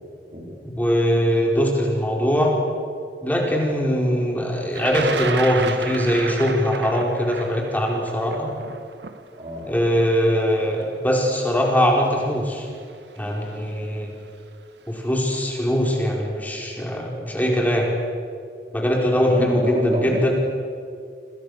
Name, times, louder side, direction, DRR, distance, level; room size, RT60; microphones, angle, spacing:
voice 1, 0.6-2.5 3.2-8.5 9.7-12.7 13.2-14.1 14.9-17.9 18.7-19.8 20.0-20.3, equal, 10° left, -1 dB, 4.8 m, -21 dB
Thunder, 4.7-10.8 11.7-11.8 12.9-13.2 13.5-14.0, right 4 dB, 75° right, 1.7 m, -31 dB
voice 2, 9.4-9.7 19.3-20.3, equal, 35° right, 0 dB, 4.9 m, -27 dB
30.0 x 26.5 x 6.8 m, 2.3 s
head